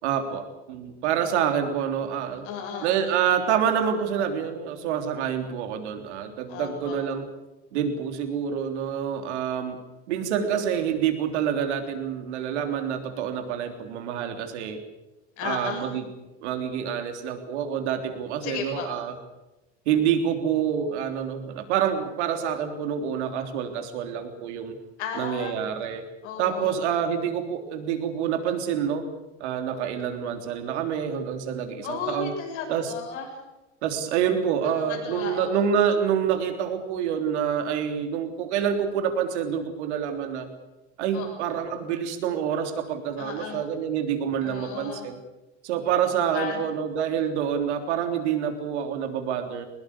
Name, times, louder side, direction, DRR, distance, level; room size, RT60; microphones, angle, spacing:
voice 1, 0.0-2.5 2.8-7.3 7.7-9.8 10.1-14.8 15.4-16.0 16.4-19.1 19.9-24.8 25.1-26.0 26.4-29.0 29.4-32.3 32.7-32.9 33.8-40.5 41.0-45.2 45.6-49.7, right 8 dB, 75° right, 6 dB, 3.6 m, -27 dB
voice 2, 2.4-2.9 6.5-7.0 15.4-16.0 18.4-19.0 25.0-25.5 26.2-26.7 31.8-33.3 34.6-35.6 41.1-41.3 43.2-43.6 44.4-45.1 46.3-46.7, left 6 dB, 70° left, 2 dB, 7.3 m, -34 dB
21.0 x 20.5 x 8.4 m, 1.0 s
hypercardioid pair, 80°, 35 cm